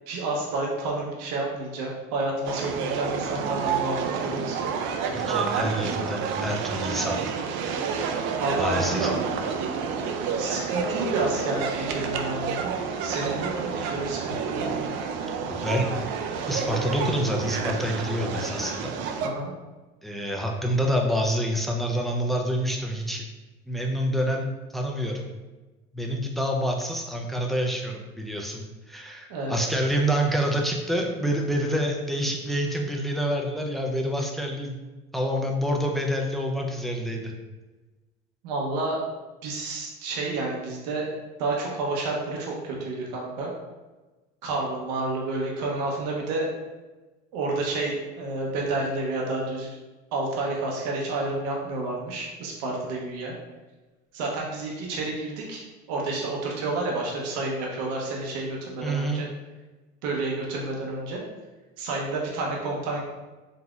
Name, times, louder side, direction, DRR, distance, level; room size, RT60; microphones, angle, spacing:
voice 1, 0.1-4.6 8.4-9.2 10.2-12.7 13.0-14.6 19.2-19.5 29.3-29.6 38.4-39.0 39.4-41.1 41.4-43.5 44.4-46.5 47.3-49.8 50.1-53.3 54.1-59.2 60.0-61.2 61.8-63.0, right 2 dB, 85° right, -2 dB, 0.8 m, -30 dB
sound 1, 2.4-19.3, right 6 dB, 65° right, 0.4 m, -29 dB
voice 2, 5.1-7.2 8.6-9.1 15.5-15.9 16.5-18.9 20.0-23.2 23.7-24.5 24.7-25.3 25.9-34.8 35.1-37.3 58.8-59.3, equal, ahead, 1 dB, 0.4 m, -27 dB
3.9 x 2.8 x 2.4 m, 1.2 s
supercardioid pair, 110°, 21 cm